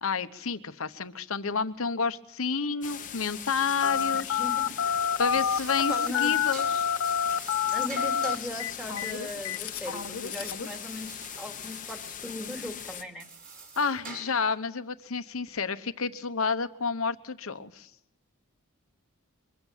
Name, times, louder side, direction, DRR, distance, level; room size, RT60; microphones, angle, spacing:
voice 1, 0.0-4.4 5.2-6.9 13.8-17.9, left 5 dB, 70° left, 10 dB, 1.0 m, -30 dB
sound 1, 2.8-13.0, left 9 dB, 35° left, 0.9 m, -40 dB
Telephone, 3.8-10.7, left 8 dB, 90° left, 1.2 m, -28 dB
voice 2, 4.1-4.8 5.9-6.3 7.7-13.3, left 1 dB, 5° right, 3 dB, 2.4 m, -39 dB
sound 2, 5.3-14.5, right 4 dB, 40° right, 6.3 m, -47 dB
23.5 x 15.5 x 7.4 m, 0.84 s
head